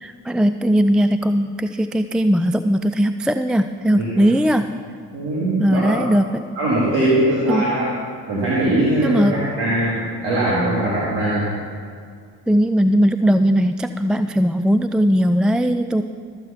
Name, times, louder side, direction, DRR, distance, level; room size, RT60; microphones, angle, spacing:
voice 1, 0.0-4.7 5.6-6.4 7.5-7.7 9.0-9.4 12.5-16.0, equal, ahead, 9 dB, 0.3 m, -18 dB
voice 2, 5.1-6.0 6.6-7.9 8.3-11.5, right 1 dB, 90° right, -7 dB, 2.3 m, -21 dB
13.5 x 8.0 x 5.7 m, 2.2 s
hypercardioid pair, 50°, 47 cm